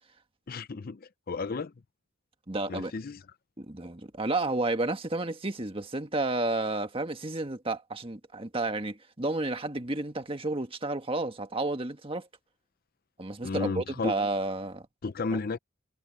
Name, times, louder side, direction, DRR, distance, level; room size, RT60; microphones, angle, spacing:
voice 1, 0.5-1.7 2.7-3.2 13.4-14.1 15.0-15.6, left 4 dB, 45° left, 0.5 m, -33 dB
voice 2, 2.5-2.9 3.6-12.3 13.2-14.9, right 2 dB, 25° right, 1.6 m, -31 dB
head